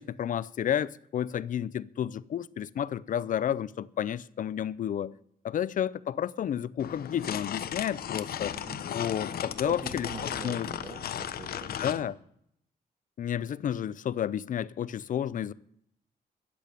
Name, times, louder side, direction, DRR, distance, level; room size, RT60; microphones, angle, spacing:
voice 1, 0.0-5.1 5.4-8.5 8.9-10.7 11.8-12.1 13.2-15.5, left 9 dB, 55° left, 0.5 m, -31 dB
sound 1, 6.8-12.0, left 9 dB, 75° left, 0.9 m, -36 dB
voice 2, 8.5-8.9 9.6-12.1, right 3 dB, 35° right, 2.2 m, -43 dB
13.5 x 8.8 x 9.0 m
wide cardioid pair, 170°, 16 cm